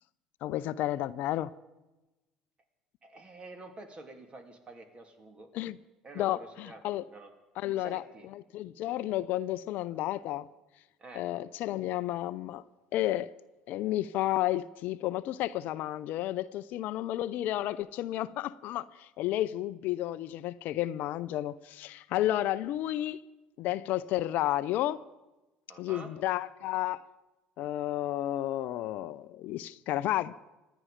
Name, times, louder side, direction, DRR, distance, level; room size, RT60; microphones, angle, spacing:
voice 1, 0.4-1.5 5.5-5.8 6.2-7.1 7.6-8.0 8.3-10.5 11.1-12.6 12.9-13.3 13.7-23.2 23.6-25.0 25.8-27.0 27.6-30.4, left 14 dB, 60° left, 0.5 m, -32 dB
voice 2, 3.0-5.5 6.0-6.8 7.1-7.3 7.6-8.3 11.0-11.3 25.7-26.1, right 2 dB, 30° right, 3.1 m, -48 dB
26.0 x 10.5 x 5.2 m
hypercardioid pair, 60°, 3 cm